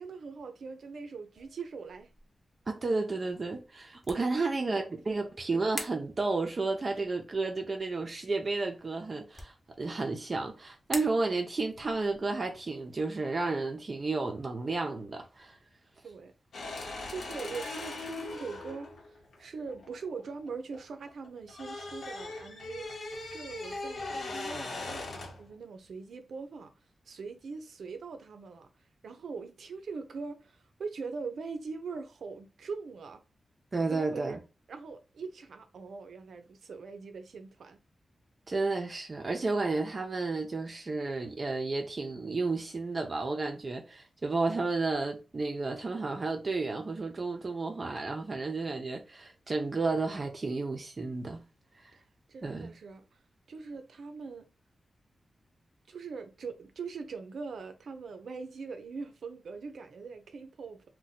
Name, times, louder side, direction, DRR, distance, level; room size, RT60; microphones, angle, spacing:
voice 1, 0.0-2.1 4.6-5.3 16.0-16.3 17.1-22.9 23.2-26.7 27.1-28.7 29.0-33.2 33.9-34.4 34.7-37.8 51.9-52.0 52.3-53.0 53.5-54.5 55.9-60.8, right 4 dB, 90° right, 0.5 m, -42 dB
sound 1, 1.3-15.5, left 1 dB, 20° left, 0.8 m, -49 dB
voice 2, 2.7-15.6 16.9-17.0 33.7-34.4 38.5-51.4 51.8-51.9 52.4-52.7, right 3 dB, 40° right, 0.5 m, -32 dB
sound 2, 16.5-20.8 21.1-25.5, left 2 dB, 90° left, 0.8 m, -40 dB
2.6 x 2.2 x 4.0 m
wide cardioid pair, 120°, 0 cm